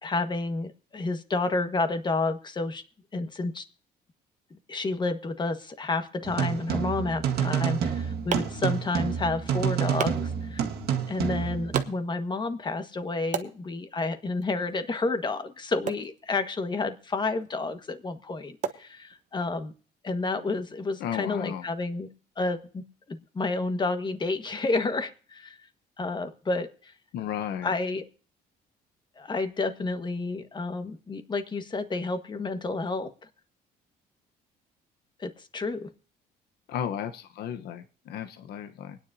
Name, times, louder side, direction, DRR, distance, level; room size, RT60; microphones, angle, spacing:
voice 1, 0.0-2.8 3.1-3.6 4.5-10.6 11.1-19.7 20.0-22.1 22.4-22.8 23.1-25.6 26.0-26.9 27.6-28.0 29.2-33.1 35.2-35.9, left 3 dB, 25° left, 8 dB, 1.5 m, -30 dB
sound 1, 6.2-11.8, right 8 dB, 70° right, 1.8 m, -28 dB
sound 2, 7.6-19.6, right 8 dB, 50° right, 1.1 m, -40 dB
voice 2, 21.0-21.6 27.1-27.7 36.7-39.0, left 9 dB, 70° left, 8 dB, 1.0 m, -34 dB
24.0 x 10.0 x 2.8 m, 0.41 s
cardioid pair, 110°, 17 cm